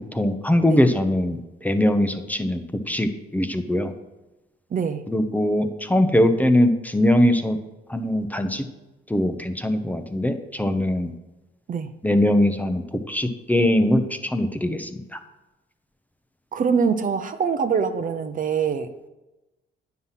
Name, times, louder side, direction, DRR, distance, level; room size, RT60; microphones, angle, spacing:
voice 1, 0.1-2.6 2.9-3.9 5.1-7.6 7.9-8.6 9.1-11.1 12.0-12.8 13.1-15.0, left 1 dB, 10° left, 7 dB, 0.8 m, -21 dB
voice 2, 4.7-5.0 11.7-11.9 16.5-19.1, right 6 dB, 40° right, 9 dB, 0.7 m, -24 dB
9.5 x 5.8 x 5.7 m, 1.0 s
cardioid pair, 90°, 20 cm